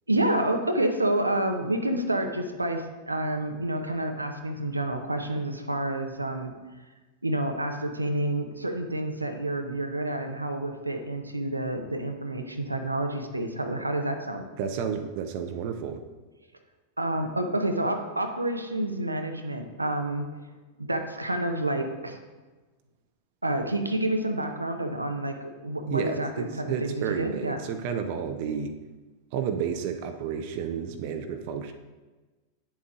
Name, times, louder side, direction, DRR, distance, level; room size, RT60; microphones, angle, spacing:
voice 1, 0.1-6.5 7.2-14.4 17.0-20.3 20.8-22.2 23.4-27.6, right 1 dB, 85° right, 5 dB, 0.7 m, -29 dB
voice 2, 14.6-16.0 25.9-28.7 29.3-31.7, right 7 dB, 45° right, 6 dB, 0.6 m, -31 dB
9.7 x 7.2 x 2.5 m, 1.2 s
figure-of-eight pair, 90°, 0 cm